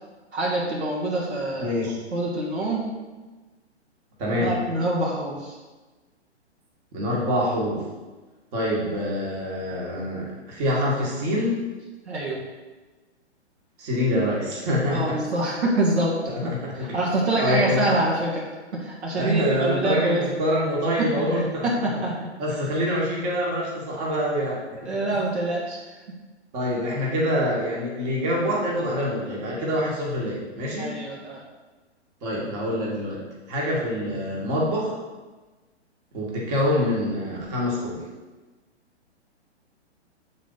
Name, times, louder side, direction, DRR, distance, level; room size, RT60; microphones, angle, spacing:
voice 1, 0.3-1.7 2.1-2.8 4.4-5.6 12.0-12.4 14.9-16.5 16.9-20.3 21.0-22.2 22.5-22.6 24.8-25.9 30.8-31.4, right 2 dB, 70° right, -3 dB, 1.6 m, -26 dB
voice 2, 1.6-2.0 4.2-4.5 6.9-7.8 8.5-11.6 13.8-15.2 16.3-17.0 17.4-18.0 19.1-21.7 22.4-24.6 26.5-31.0 32.2-33.2 33.5-34.9 36.1-38.0, equal, 35° right, -4 dB, 1.8 m, -25 dB
7.3 x 4.1 x 3.9 m, 1.2 s
figure-of-eight pair, 120°, 34 cm